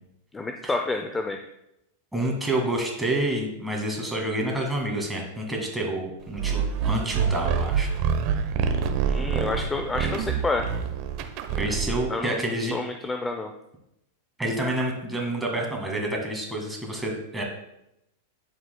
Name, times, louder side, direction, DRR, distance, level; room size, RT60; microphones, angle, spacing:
voice 1, 0.3-1.4 9.1-10.6 12.1-13.5, left 3 dB, 15° left, 5 dB, 0.5 m, -29 dB
voice 2, 2.1-7.9 11.5-12.7 14.4-17.4, right 1 dB, 5° right, 0 dB, 1.9 m, -28 dB
sound 1, 6.4-12.1, right 6 dB, 50° right, 0.8 m, -26 dB
11.5 x 4.7 x 2.2 m, 0.85 s
hypercardioid pair, 110°, 0 cm